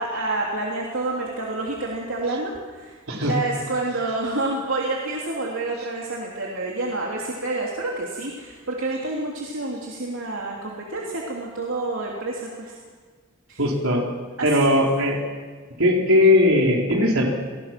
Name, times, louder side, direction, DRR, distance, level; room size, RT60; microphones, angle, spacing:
voice 1, 0.0-12.7 13.5-13.6 14.4-14.7, right 2 dB, 70° right, -2 dB, 3.2 m, -28 dB
voice 2, 13.6-14.0 14.4-15.2 15.8-17.2, left 1 dB, 90° right, -1 dB, 4.4 m, -18 dB
29.0 x 20.5 x 6.1 m, 1.5 s
head